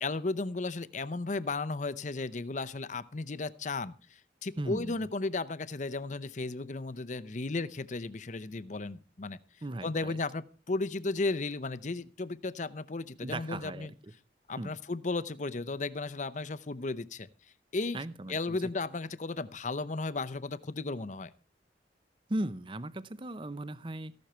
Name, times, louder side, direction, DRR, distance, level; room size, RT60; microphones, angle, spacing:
voice 1, 0.0-9.4 9.8-13.9 14.5-17.3 17.7-18.0 18.3-21.3, left 3 dB, 45° left, 15 dB, 0.7 m, -34 dB
voice 2, 4.6-5.0 9.6-10.2 13.2-14.1 14.6-14.8 17.9-18.6 22.3-24.1, right 1 dB, 30° right, 16 dB, 0.7 m, -37 dB
15.0 x 12.0 x 4.4 m, 0.35 s
head